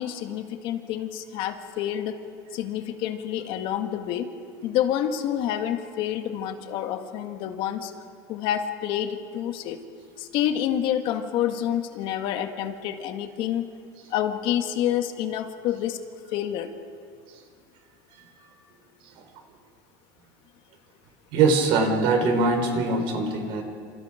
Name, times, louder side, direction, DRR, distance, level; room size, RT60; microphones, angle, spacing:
voice 1, 0.0-2.2 2.5-4.3 4.6-7.9 8.3-9.8 10.2-13.6 14.1-16.0 16.3-16.7, left 10 dB, 55° left, 6 dB, 2.0 m, -28 dB
voice 2, 21.3-23.6, right 3 dB, 60° right, 4 dB, 4.9 m, -22 dB
28.0 x 27.5 x 5.2 m, 2.3 s
supercardioid pair, 145°, 10 cm